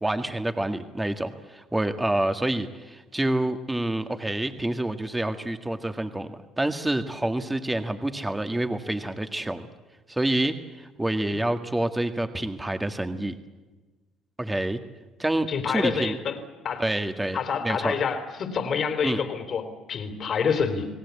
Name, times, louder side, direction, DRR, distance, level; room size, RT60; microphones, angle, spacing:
voice 1, 0.0-9.7 10.1-13.3 14.4-14.8 15.2-16.2 16.8-17.9 19.0-19.2, right 1 dB, 10° right, 8 dB, 1.9 m, -27 dB
voice 2, 15.5-16.4 16.6-16.9 17.3-20.9, left 6 dB, 50° left, 9 dB, 3.7 m, -27 dB
29.5 x 18.5 x 8.5 m, 1.2 s
supercardioid pair, 80°, 0 cm